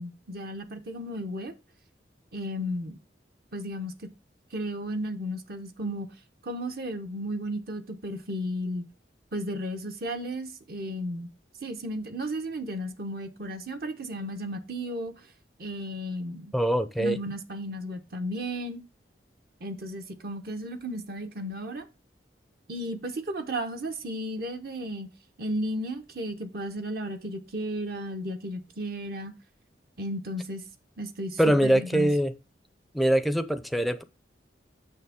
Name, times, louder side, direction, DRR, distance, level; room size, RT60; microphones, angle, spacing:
voice 1, 0.0-1.5 2.3-3.0 3.5-3.9 4.5-6.1 6.4-8.9 9.3-11.3 11.6-15.1 15.6-16.5 17.0-18.8 19.6-21.9 22.7-25.1 25.4-29.3 30.0-30.6 31.0-32.1, equal, 55° right, 0.9 m, -34 dB
voice 2, 16.5-17.2 31.4-32.3 32.9-34.0, right 1 dB, ahead, 0.5 m, -23 dB
6.5 x 6.5 x 3.5 m
head